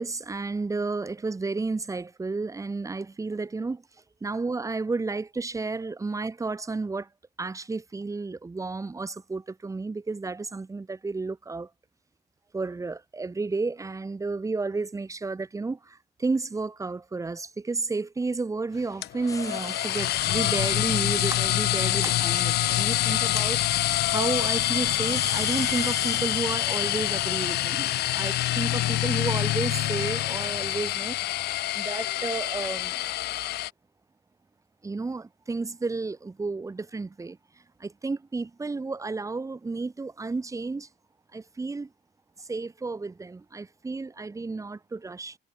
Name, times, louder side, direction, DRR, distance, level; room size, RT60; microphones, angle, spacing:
voice 1, 0.0-3.8 4.2-7.1 7.4-11.7 12.5-23.6 24.1-31.2 31.7-33.0 34.8-37.4 37.8-40.9 41.3-41.9 42.4-45.4, right 3 dB, 20° right, 2.4 m, -32 dB
sound 1, 19.0-33.7, left 15 dB, 75° left, 1.9 m, -26 dB
sound 2, 19.3-26.2, left 3 dB, 20° left, 1.7 m, -38 dB
cardioid pair, 110°, 17 cm